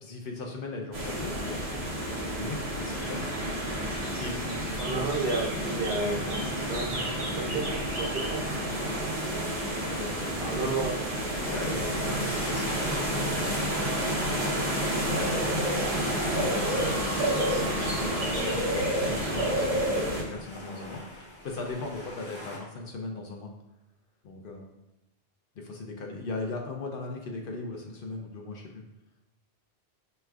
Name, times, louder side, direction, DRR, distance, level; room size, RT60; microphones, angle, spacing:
voice 1, 0.0-1.6 2.4-3.3 4.2-4.8 9.8-10.7 11.5-13.6 15.9-17.3 17.6-21.0 21.4-23.5 24.2-24.7 25.6-28.8, left 3 dB, 65° left, 1 dB, 0.7 m, -38 dB
sound 1, 0.9-20.2, right 1 dB, 40° right, 0.7 m, -29 dB
voice 2, 4.8-7.1 7.3-8.4 10.4-11.0 16.4-16.7, right 3 dB, 65° right, -1 dB, 1.0 m, -32 dB
sound 2, 11.4-22.6, left 1 dB, 30° left, 0.8 m, -45 dB
sound 3, 15.5-19.4, left 1 dB, 5° left, 1.3 m, -41 dB
5.2 x 3.1 x 2.3 m, 0.91 s
omnidirectional pair, 1.1 m